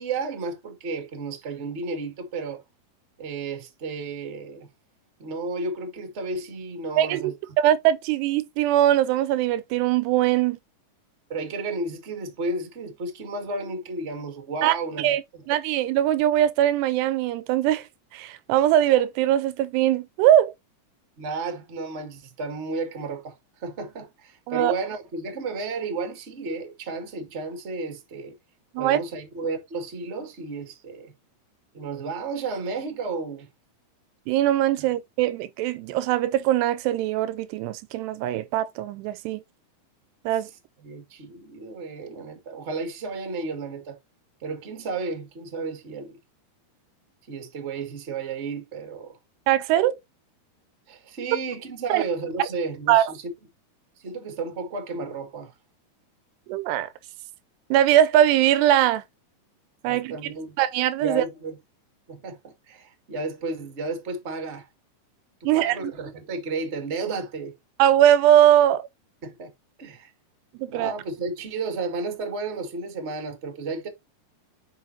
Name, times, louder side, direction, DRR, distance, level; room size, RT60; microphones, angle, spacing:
voice 1, 0.0-2.6 3.2-4.7 5.2-7.3 11.3-15.4 21.2-23.3 23.6-28.3 28.7-31.1 31.7-33.5 34.8-34.9 40.8-44.0 44.4-46.2 47.3-49.2 50.9-53.3 54.0-55.5 59.8-60.6 61.0-61.6 62.1-64.7 65.4-67.5 69.2-69.5 69.8-70.1 70.7-73.9, right 3 dB, 30° right, 1.2 m, -32 dB
voice 2, 7.0-10.6 14.6-15.2 15.5-17.9 18.1-20.5 24.5-24.7 28.7-29.0 34.3-39.4 40.3-40.5 49.5-50.0 51.9-52.0 52.9-53.1 56.5-56.9 57.7-59.0 59.8-60.2 60.6-61.2 65.4-65.9 67.8-68.8 70.6-70.9, right 12 dB, 90° right, 2.8 m, -21 dB
9.2 x 5.5 x 2.8 m
omnidirectional pair, 4.7 m